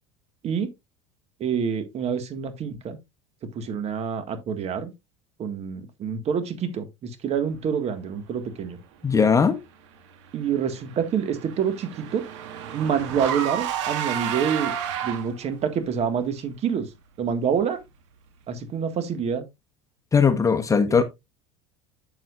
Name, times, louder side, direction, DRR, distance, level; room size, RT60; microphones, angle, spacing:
voice 1, 1.4-3.0 3.5-4.9 5.4-8.8 10.3-12.3 12.7-14.7 15.0-16.9 17.2-17.8 18.5-19.4 20.9-21.0, right 7 dB, 45° right, 1.8 m, -27 dB
voice 2, 9.0-9.6 20.1-21.0, left 5 dB, 20° left, 1.2 m, -19 dB
Car / Engine, 10.5-15.5, right 9 dB, 75° right, 1.7 m, -31 dB
7.7 x 7.7 x 2.5 m
hypercardioid pair, 85°, 15 cm